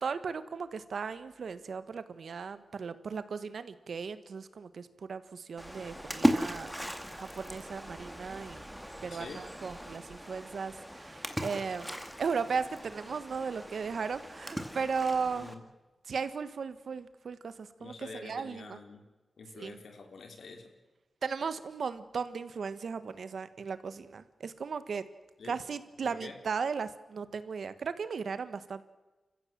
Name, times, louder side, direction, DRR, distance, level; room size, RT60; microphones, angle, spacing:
voice 1, 0.0-6.7 7.2-15.5 16.1-18.8 19.6-19.8 21.2-25.1 25.4-28.8, right 5 dB, 80° right, 13 dB, 1.4 m, -36 dB
Splash splatter, 5.6-15.5, equal, ahead, 2.2 m, -37 dB
voice 2, 9.1-9.5 15.3-15.6 17.8-19.1 19.4-20.7 25.4-25.6 26.0-26.4, left 4 dB, 85° left, 5 dB, 3.5 m, -47 dB
29.5 x 15.0 x 7.5 m, 1.2 s
wide cardioid pair, 90°, 0 cm